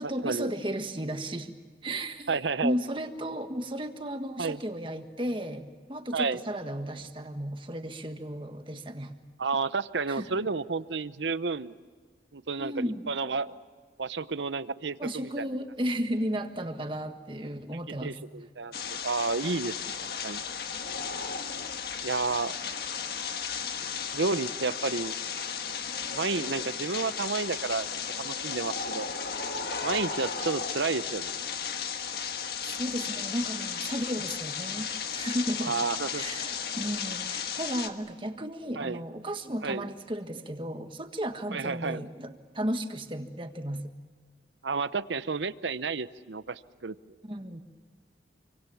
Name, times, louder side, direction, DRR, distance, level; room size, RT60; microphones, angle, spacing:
voice 1, 0.0-1.5 1.8-2.3 2.6-9.1 10.1-10.3 12.6-13.0 15.0-18.1 32.6-35.7 36.1-43.9 47.2-47.6, equal, 30° right, 6 dB, 1.6 m, -34 dB
voice 2, 2.3-2.8 4.4-4.6 6.1-6.4 9.4-11.7 12.3-13.6 14.0-15.5 18.0-18.7 19.0-19.9 20.2-20.4 22.0-22.5 24.1-25.2 26.1-27.9 28.2-29.1 29.8-31.3 35.6-36.2 38.8-39.0 39.6-39.8 41.5-42.0 44.6-46.9, right 4 dB, 80° right, 14 dB, 0.8 m, -31 dB
sound 1, 18.7-37.9, left 6 dB, 55° left, 1.6 m, -35 dB
28.0 x 25.0 x 7.1 m, 1.5 s
head